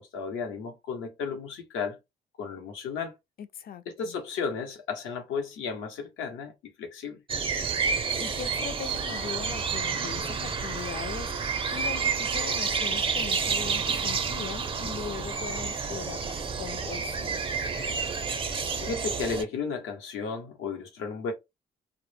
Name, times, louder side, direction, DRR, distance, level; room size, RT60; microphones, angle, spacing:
voice 1, 0.0-2.0 2.4-3.1 4.0-7.2 18.8-21.3, left 5 dB, 85° left, 0.8 m, -34 dB
voice 2, 3.4-4.2 7.8-17.4, left 8 dB, 50° left, 0.4 m, -40 dB
sound 1, 7.3-19.4, right 5 dB, 25° right, 0.4 m, -30 dB
2.0 x 2.0 x 3.1 m
cardioid pair, 90°, 20 cm